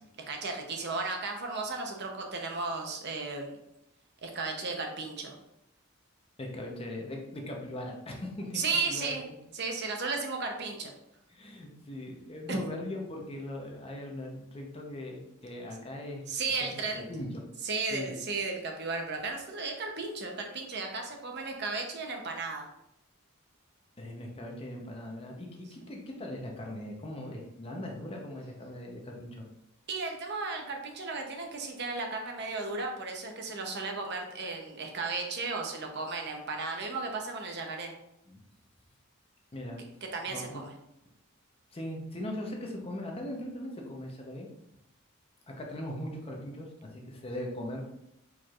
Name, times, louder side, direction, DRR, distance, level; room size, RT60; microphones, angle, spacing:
voice 1, 0.3-3.6 4.2-5.3 8.5-9.2 9.5-10.9 12.5-12.6 16.3-17.0 17.6-22.7 29.9-37.9 40.1-40.7, right 3 dB, 50° right, 2 dB, 0.7 m, -34 dB
voice 2, 6.4-8.6 8.9-9.4 11.3-16.3 16.7-17.4 17.9-18.3 24.0-29.5 38.3-38.4 39.5-39.8 40.3-40.6 41.7-44.5 45.5-47.8, left 1 dB, 25° left, 0 dB, 0.7 m, -40 dB
4.7 x 4.4 x 2.4 m, 0.83 s
head